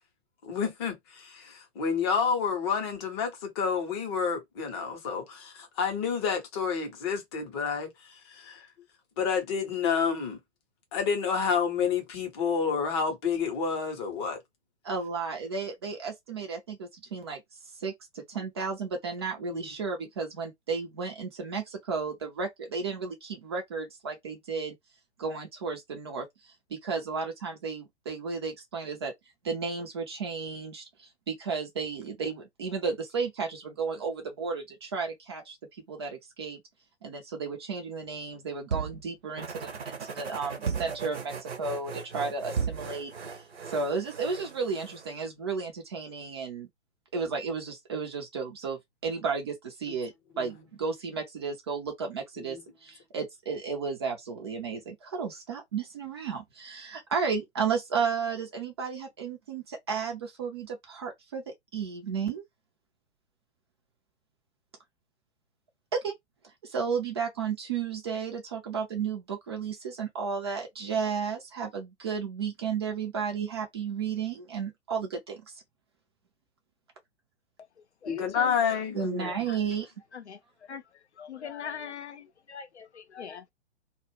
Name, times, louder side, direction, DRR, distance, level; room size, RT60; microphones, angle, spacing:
voice 1, 0.4-8.7 9.2-10.4 10.9-14.4 19.5-19.7 50.3-50.6 52.4-52.6 78.1-79.3, left 6 dB, 25° left, 0.6 m, -29 dB
voice 2, 14.8-17.4 17.8-24.7 25.2-29.1 29.4-35.6 35.9-36.6 37.0-46.7 47.1-62.4 65.9-66.1 66.6-75.6 78.9-79.8, right 5 dB, 25° right, 0.4 m, -33 dB
sound 1, 38.7-39.1 40.7-41.1 42.6-42.9, right 6 dB, 90° right, 0.5 m, -31 dB
sound 2, 39.4-45.2, right 5 dB, 60° right, 0.8 m, -41 dB
voice 3, 78.0-78.8 79.2-79.6 80.1-80.8 81.2-83.5, left 7 dB, 75° left, 0.5 m, -42 dB
2.1 x 2.0 x 3.0 m
figure-of-eight pair, 115°, 34 cm